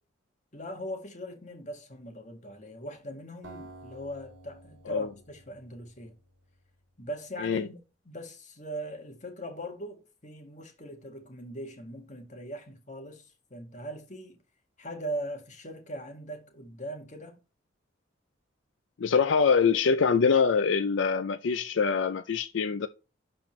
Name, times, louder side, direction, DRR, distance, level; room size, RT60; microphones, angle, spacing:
voice 1, 0.5-6.2 7.0-7.8 8.1-14.4 14.8-17.4, right 1 dB, 40° left, 1.9 m, -40 dB
Acoustic guitar, 3.4-6.6, right 2 dB, 70° right, 2.6 m, -51 dB
voice 2, 19.0-22.9, left 5 dB, 70° left, 0.4 m, -24 dB
12.0 x 4.3 x 3.1 m
head